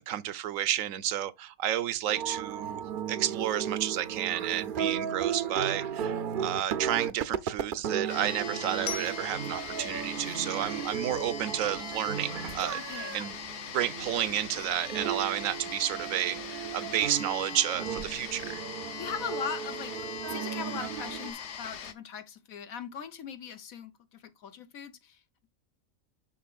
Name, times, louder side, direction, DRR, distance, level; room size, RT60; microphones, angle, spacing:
voice 1, 0.0-2.8 3.1-12.8 13.1-13.4 13.7-18.6, right 11 dB, 80° right, 1.0 m, -31 dB
sound 1, 2.1-21.3, right 8 dB, 55° right, 0.6 m, -35 dB
sound 2, 8.1-21.9, left 7 dB, 60° left, 1.1 m, -41 dB
Glockenspiel, 8.9-11.7, left 4 dB, 35° left, 0.7 m, -43 dB
voice 2, 12.7-13.3 19.0-19.9 20.2-25.2, left 7 dB, 85° left, 1.5 m, -40 dB
11.5 x 4.0 x 2.4 m
omnidirectional pair, 1.4 m